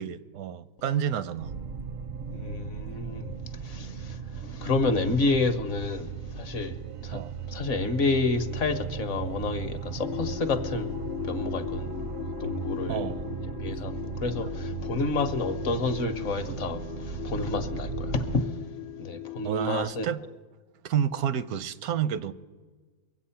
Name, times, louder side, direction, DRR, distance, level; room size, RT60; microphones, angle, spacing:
voice 1, 0.0-1.5 7.1-7.3 12.9-13.3 19.4-20.2 20.8-22.3, right 9 dB, 80° right, 1.1 m, -29 dB
sound 1, 1.4-18.4, right 7 dB, 65° right, 0.6 m, -37 dB
voice 2, 2.3-3.3 3.6-6.7 7.0-7.2 7.5-12.1 12.4-13.1 13.6-18.6 19.0-20.1, left 3 dB, 60° left, 1.2 m, -29 dB
sound 2, 10.0-19.6, left 13 dB, 85° left, 0.5 m, -37 dB
23.5 x 8.2 x 5.7 m
omnidirectional pair, 1.6 m